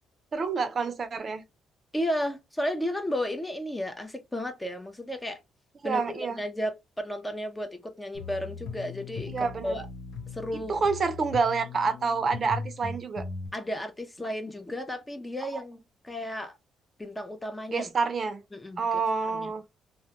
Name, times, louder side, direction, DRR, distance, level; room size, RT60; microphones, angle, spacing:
voice 1, 0.3-1.4 5.8-6.4 9.3-9.8 10.7-13.2 17.7-18.4 18.8-19.6, right 5 dB, 45° right, 0.5 m, -28 dB
voice 2, 1.9-5.4 5.8-9.9 10.3-10.8 13.5-16.6 17.0-17.9 18.5-19.0 19.3-19.5, equal, 15° left, 0.6 m, -33 dB
sound 1, 8.1-13.5, left 4 dB, 85° left, 0.6 m, -39 dB
2.2 x 2.1 x 2.8 m
cardioid pair, 90°, 0 cm